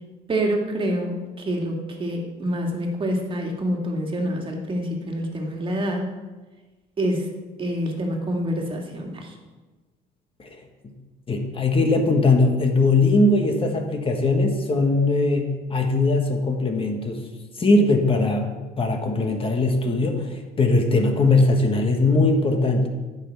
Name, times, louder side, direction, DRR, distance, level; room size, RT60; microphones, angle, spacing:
voice 1, 0.3-6.1 7.0-7.3 7.6-9.3, equal, 30° right, 1 dB, 2.0 m, -26 dB
voice 2, 11.3-17.3 17.6-18.5 18.8-22.9, left 2 dB, 35° left, 4 dB, 1.3 m, -20 dB
14.5 x 5.8 x 4.6 m, 1.2 s
cardioid pair, 110°, 17 cm